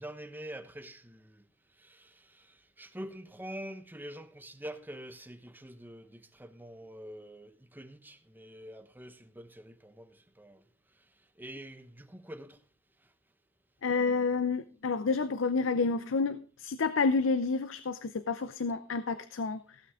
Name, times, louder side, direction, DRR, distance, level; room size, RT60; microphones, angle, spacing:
voice 1, 0.0-1.4 1.8-10.6 11.4-12.6, right 1 dB, 10° right, 0.9 m, -46 dB
voice 2, 13.8-19.8, left 4 dB, 65° left, 0.6 m, -29 dB
16.0 x 8.4 x 3.7 m
head